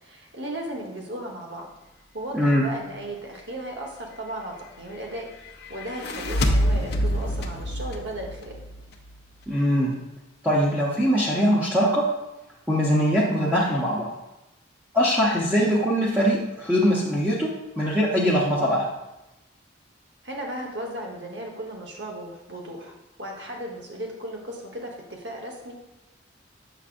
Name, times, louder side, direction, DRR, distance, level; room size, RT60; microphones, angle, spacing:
voice 1, 0.0-1.7 2.1-5.3 5.7-8.5 20.2-25.7, right 1 dB, 60° right, 0 dB, 1.2 m, -36 dB
voice 2, 2.3-2.6 9.5-9.9 10.4-12.0 12.7-14.1 14.9-17.5 17.8-18.9, equal, 5° right, -7 dB, 0.8 m, -22 dB
sound 1, 5.8-9.2, equal, 55° left, 0.7 m, -26 dB
7.2 x 5.7 x 2.5 m, 0.96 s
head